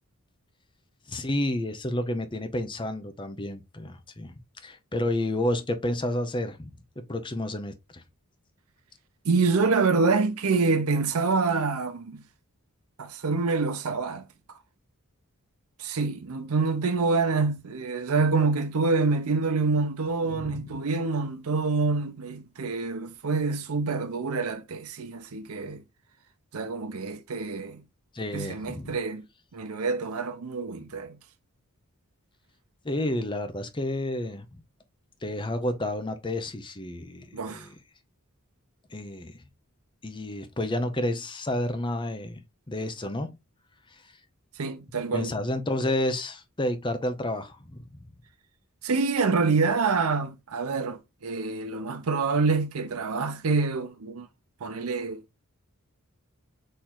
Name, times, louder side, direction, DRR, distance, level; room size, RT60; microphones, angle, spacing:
voice 1, 1.1-6.7 7.1-8.0 20.3-20.8 28.1-28.9 32.8-34.6 35.2-37.7 38.9-39.4 40.0-43.4 43.9-44.0 45.1-47.8, left 1 dB, 20° left, 0.7 m, -30 dB
voice 2, 9.2-12.2 13.0-14.3 15.8-25.8 26.5-27.8 28.3-29.3 29.5-31.2 37.3-37.7 44.6-45.3 48.8-54.3 54.6-55.4, right 4 dB, 80° right, 0.6 m, -26 dB
4.4 x 3.1 x 3.7 m
head